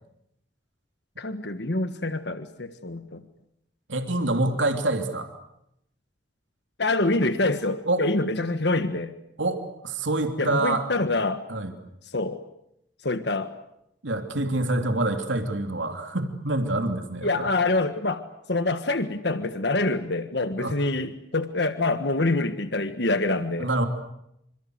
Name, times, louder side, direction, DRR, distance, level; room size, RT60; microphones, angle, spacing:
voice 1, 1.2-3.2 6.8-9.1 10.4-11.4 12.1-12.4 13.0-13.5 17.2-18.2 18.5-23.7, left 2 dB, 65° left, 9 dB, 1.5 m, -26 dB
voice 2, 3.9-5.3 7.9-8.0 9.4-10.9 11.5-11.7 14.0-17.5 20.6-20.8 23.6-23.9, right 2 dB, 85° right, 6 dB, 3.1 m, -26 dB
27.5 x 27.0 x 8.0 m, 0.80 s
head